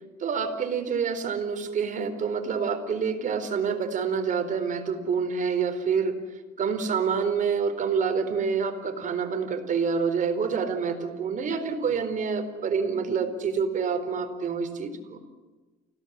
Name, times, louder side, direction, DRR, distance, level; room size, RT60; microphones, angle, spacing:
voice 1, 0.2-6.2 6.6-15.2, right 6 dB, 50° right, 7 dB, 4.3 m, -27 dB
29.5 x 17.5 x 10.0 m, 1.2 s
cardioid pair, 110°, 17 cm